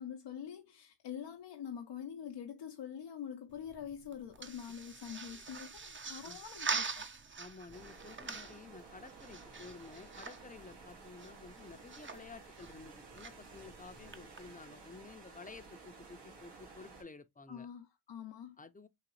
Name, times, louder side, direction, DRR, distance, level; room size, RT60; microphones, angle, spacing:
voice 1, 0.0-7.1 17.5-18.6, left 8 dB, 80° left, 0.6 m, -45 dB
sound 1, 3.5-14.4, right 5 dB, 30° right, 0.5 m, -44 dB
voice 2, 7.4-17.7 18.6-18.9, left 4 dB, 20° left, 0.5 m, -52 dB
sound 2, 7.7-17.0, right 4 dB, 85° right, 1.8 m, -54 dB
3.9 x 2.7 x 3.0 m
cardioid pair, 55°, 41 cm